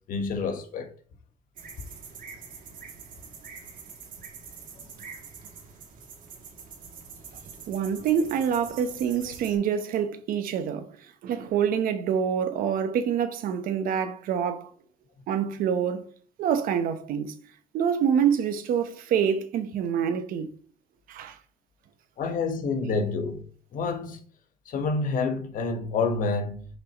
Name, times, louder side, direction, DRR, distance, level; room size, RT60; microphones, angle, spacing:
voice 1, 0.1-0.9 9.3-9.4 22.2-23.4 23.7-24.2 24.7-26.7, left 4 dB, 75° left, 1.3 m, -28 dB
sound 1, 1.6-9.6, right 5 dB, 75° right, 2.2 m, -45 dB
voice 2, 7.7-10.9 11.2-14.7 15.3-16.1 16.4-17.4 17.7-20.5 21.1-21.4, right 8 dB, 90° right, 0.9 m, -26 dB
6.5 x 5.5 x 3.0 m
cardioid pair, 95°, 14 cm